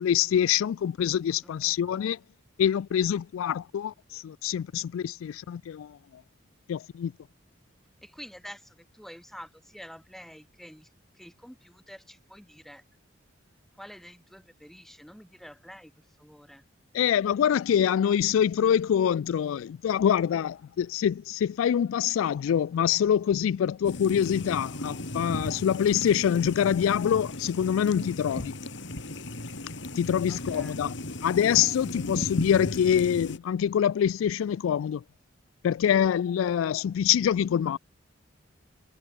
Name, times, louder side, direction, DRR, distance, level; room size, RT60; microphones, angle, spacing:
voice 1, 0.0-2.2 2.6-6.2 6.7-7.1 16.9-28.5 30.0-30.9 31.2-35.0 35.6-37.8, left 9 dB, 85° left, 0.3 m, -25 dB
voice 2, 1.4-1.8 8.0-10.9 11.1-12.8 13.8-15.9 16.2-16.6 30.3-30.8, equal, ahead, 6.9 m, -48 dB
sound 1, 23.8-33.4, left 1 dB, 65° left, 3.0 m, -36 dB
head